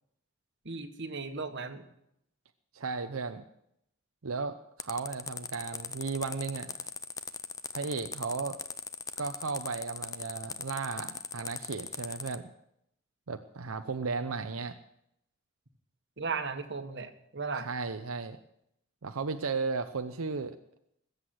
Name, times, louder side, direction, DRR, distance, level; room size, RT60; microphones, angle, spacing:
voice 1, 0.6-1.8 16.2-17.7, right 4 dB, 60° right, 7 dB, 1.6 m, -36 dB
voice 2, 2.8-3.4 4.2-6.7 7.7-8.6 9.2-12.5 13.3-14.8 17.6-18.4 19.0-20.6, right 4 dB, 90° right, 7 dB, 0.8 m, -35 dB
sound 1, 4.8-12.3, left 5 dB, 15° left, 0.6 m, -39 dB
20.0 x 8.2 x 7.9 m, 0.77 s
head